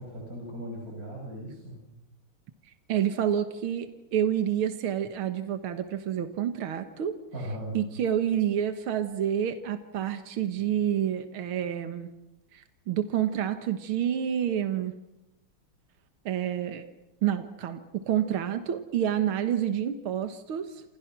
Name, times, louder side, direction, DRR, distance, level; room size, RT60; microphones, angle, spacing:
voice 1, 0.0-1.8 7.3-7.8, equal, 40° right, -1 dB, 7.1 m, -38 dB
voice 2, 2.7-7.2 7.7-12.1 12.5-15.0 16.3-16.9 17.2-20.8, right 10 dB, 80° right, 9 dB, 2.2 m, -28 dB
28.5 x 28.0 x 6.1 m, 0.90 s
omnidirectional pair, 2.3 m